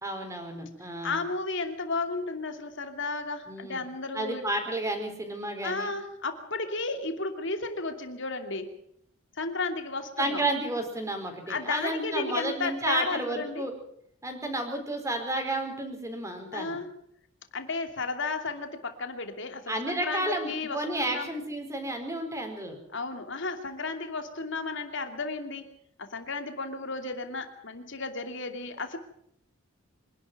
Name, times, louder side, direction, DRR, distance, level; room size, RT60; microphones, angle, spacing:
voice 1, 0.0-1.2 3.5-3.8 4.1-5.9 10.2-13.7 14.2-16.8 19.7-22.8, right 1 dB, 15° right, 4 dB, 4.3 m, -31 dB
voice 2, 1.0-4.4 5.6-8.7 9.4-10.4 11.5-13.6 16.5-16.9 17.5-21.3 22.9-25.7 26.0-29.0, left 3 dB, 60° left, 6 dB, 2.7 m, -33 dB
25.5 x 11.5 x 9.2 m, 0.72 s
head